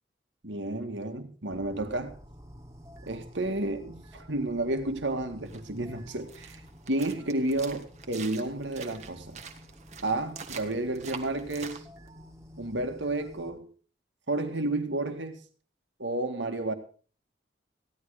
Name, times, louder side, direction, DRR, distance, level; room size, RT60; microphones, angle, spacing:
voice 1, 0.4-2.1 3.1-6.6 6.9-9.4 10.0-11.8 12.6-13.7 14.3-15.4 16.0-16.7, right 2 dB, 85° right, 2.1 m, -31 dB
sound 1, 1.5-13.6, equal, 15° right, 1.8 m, -51 dB
sound 2, 5.5-11.8, right 6 dB, 35° right, 1.5 m, -45 dB
16.0 x 11.5 x 5.0 m
head